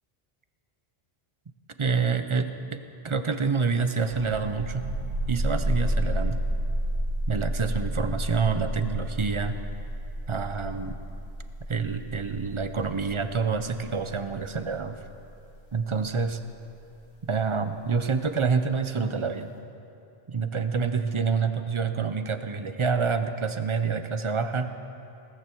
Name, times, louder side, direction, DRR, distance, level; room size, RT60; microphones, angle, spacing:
voice 1, 1.8-4.8 5.3-6.4 7.3-9.6 10.3-11.0 11.7-15.0 15.7-16.4 17.3-19.5 20.3-24.7, right 5 dB, 35° right, 9 dB, 0.6 m, -27 dB
sound 1, 4.0-17.4, right 1 dB, 85° right, 2.6 m, -31 dB
18.5 x 14.0 x 4.5 m, 2.7 s
omnidirectional pair, 1.1 m